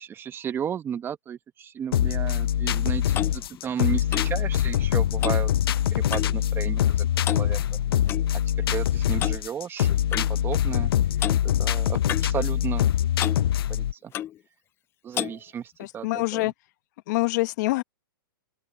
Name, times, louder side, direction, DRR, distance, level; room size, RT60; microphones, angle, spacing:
voice 1, 0.0-5.5 5.9-7.6 8.6-10.9 11.4-12.9 13.7-14.1 15.0-16.5, right 8 dB, 20° right, 1.4 m, -34 dB
sound 1, 1.9-13.9, left 11 dB, 75° left, 0.4 m, -24 dB
Clock, 2.6-6.5 6.7-7.0 7.2-8.3 9.2-9.4 10.1-10.3 11.2-11.4 12.1-12.9 13.2-13.4 14.1-14.4 15.1-15.4, left 11 dB, 20° left, 0.5 m, -33 dB
voice 2, 15.8-16.5 17.1-17.8, left 22 dB, 50° left, 1.5 m, -25 dB
open air
hypercardioid pair, 140°, 12 cm